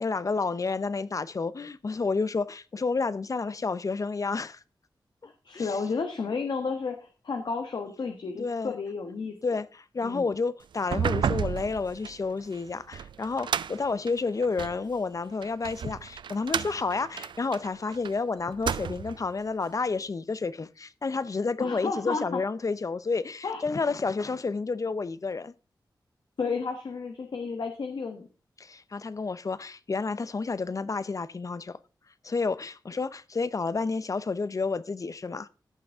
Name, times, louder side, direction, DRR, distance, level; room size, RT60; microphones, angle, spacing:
voice 1, 0.0-4.6 5.5-5.8 8.3-8.7 9.4-25.5 28.6-31.8 32.2-35.5, left 4 dB, 45° left, 0.7 m, -30 dB
voice 2, 5.2-9.3 10.0-10.3 21.6-22.4 23.4-23.6 26.4-28.3, left 4 dB, 70° left, 1.3 m, -32 dB
sound 1, 10.8-14.8 15.4-18.1 18.5-19.3, right 8 dB, 80° right, 0.3 m, -32 dB
14.5 x 6.3 x 3.5 m
wide cardioid pair, 90°, 8 cm